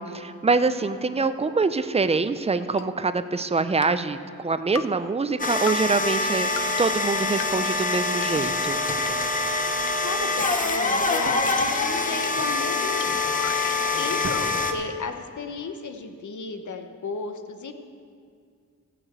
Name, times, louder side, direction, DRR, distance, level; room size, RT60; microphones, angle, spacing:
voice 1, 0.0-8.8, right 4 dB, 20° right, 11 dB, 0.3 m, -25 dB
sound 1, 2.8-2.9 3.8-3.9 4.8-4.9 5.7-5.8 6.6-6.7 7.4-7.5 8.2-8.3 9.1-9.2 9.9-10.0 10.7-10.8 11.5-11.6 12.2-12.3 13.0-13.1 13.3-14.5, left 9 dB, 85° left, 0.5 m, -34 dB
sound 2, 5.4-14.7, left 3 dB, 25° left, 0.7 m, -25 dB
sound 3, 8.3-9.9 10.7-12.7 14.2-15.8, right 2 dB, 45° right, 1.3 m, -41 dB
voice 2, 10.0-13.2 13.6-14.4 14.7-17.7, left 4 dB, 65° left, 6 dB, 0.9 m, -34 dB
14.0 x 6.0 x 7.8 m, 2.2 s
wide cardioid pair, 170°, 32 cm